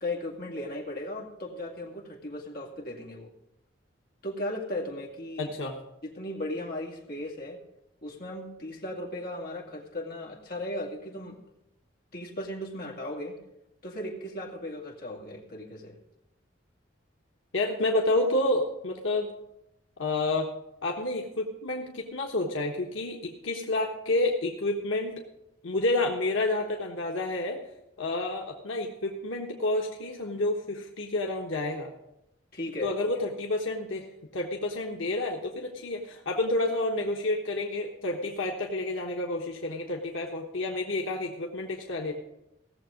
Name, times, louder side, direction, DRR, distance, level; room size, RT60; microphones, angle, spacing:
voice 1, 0.0-3.3 4.2-5.5 6.0-7.6 8.0-11.4 12.1-13.4 13.8-16.0 32.5-32.9, left 1 dB, 50° left, -2 dB, 2.3 m, -36 dB
voice 2, 5.4-5.8 17.5-19.3 20.0-20.5 20.8-25.2 25.6-27.6 28.0-31.9 32.8-34.1 34.3-42.1, left 2 dB, 85° left, 0 dB, 1.3 m, -29 dB
17.5 x 7.1 x 5.2 m, 0.87 s
head